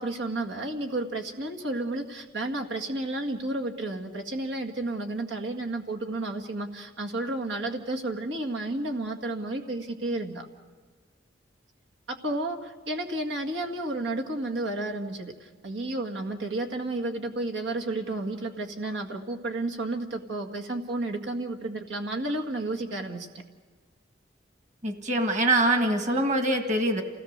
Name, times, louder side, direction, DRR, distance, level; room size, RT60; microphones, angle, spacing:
voice 1, 0.0-10.5 12.1-23.3, right 2 dB, 90° right, 2 dB, 2.0 m, -32 dB
voice 2, 24.8-27.0, right 1 dB, 40° right, 5 dB, 1.8 m, -24 dB
28.5 x 17.5 x 6.7 m, 1.5 s
head